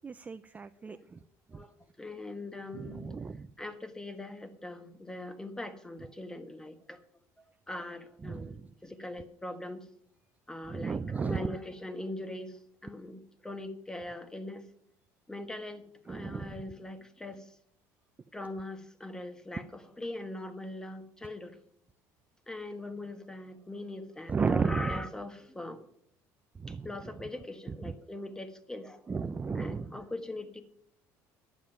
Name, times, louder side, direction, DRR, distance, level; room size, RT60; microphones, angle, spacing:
voice 1, 0.0-1.2 1.5-1.6 2.7-3.5 8.2-8.7 10.7-11.5 16.1-16.6 24.3-25.0 26.6-26.9 27.7-27.8 29.1-30.0, right 5 dB, 20° right, 11 dB, 0.4 m, -33 dB
voice 2, 1.5-3.1 3.6-7.0 7.7-9.8 10.5-12.6 12.8-14.6 15.3-17.5 18.3-21.6 22.5-25.8 26.7-29.2 29.5-30.6, left 1 dB, 10° left, 10 dB, 1.4 m, -41 dB
10.0 x 7.3 x 8.9 m, 0.68 s
cardioid pair, 110°, 7 cm